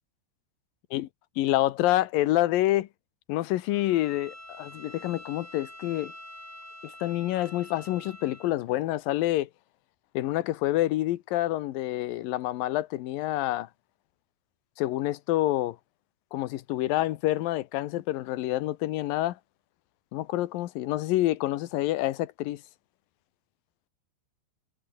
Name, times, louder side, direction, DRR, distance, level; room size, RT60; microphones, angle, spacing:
voice 1, 1.4-2.9 3.3-6.1 6.8-9.5 10.1-13.7 14.8-15.8 16.3-19.4 20.1-22.6, left 15 dB, 75° left, 2.1 m, -27 dB
Bowed string instrument, 3.7-8.6, left 1 dB, 5° left, 2.9 m, -46 dB
omnidirectional pair, 5.3 m